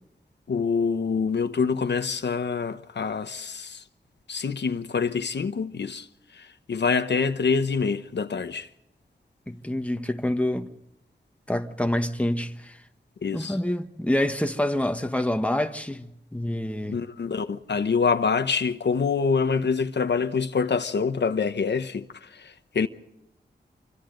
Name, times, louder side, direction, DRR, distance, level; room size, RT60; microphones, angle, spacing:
voice 1, 0.5-3.8 4.3-6.1 6.3-8.7 13.2-13.6 16.9-22.9, left 5 dB, 75° left, 1.0 m, -26 dB
voice 2, 9.5-10.7 11.5-12.8 13.3-17.0, left 1 dB, 5° left, 1.3 m, -27 dB
27.5 x 25.0 x 3.9 m
wide cardioid pair, 85°, 18 cm